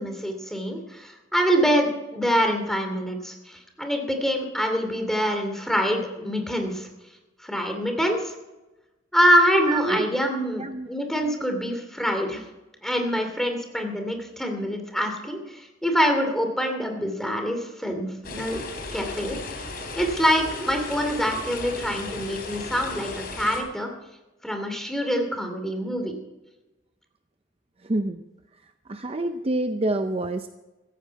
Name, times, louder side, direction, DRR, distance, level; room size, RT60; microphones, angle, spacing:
voice 1, 0.0-6.9 7.4-8.3 9.1-12.4 12.8-18.6 18.9-19.4 19.9-23.9 24.4-26.2, equal, ahead, 4 dB, 2.6 m, -25 dB
voice 2, 9.7-10.1 10.6-10.9 27.8-28.2 28.9-30.5, right 2 dB, 30° right, 8 dB, 0.6 m, -27 dB
sound 1, 18.2-23.6, left 3 dB, 55° left, 3.6 m, -35 dB
16.0 x 14.5 x 4.7 m, 1.1 s
head